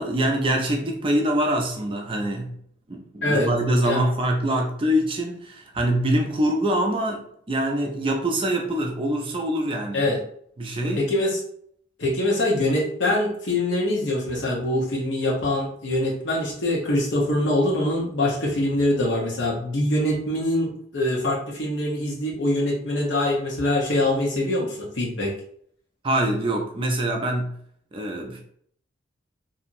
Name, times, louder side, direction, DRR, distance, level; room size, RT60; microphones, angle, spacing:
voice 1, 0.0-2.6 2.9-10.1 10.6-11.1 26.0-27.6 27.9-28.4, right 1 dB, 30° right, 0.4 m, -24 dB
voice 2, 11.0-11.4 12.0-25.3, left 1 dB, 70° left, 0.9 m, -24 dB
2.8 x 2.6 x 2.5 m
head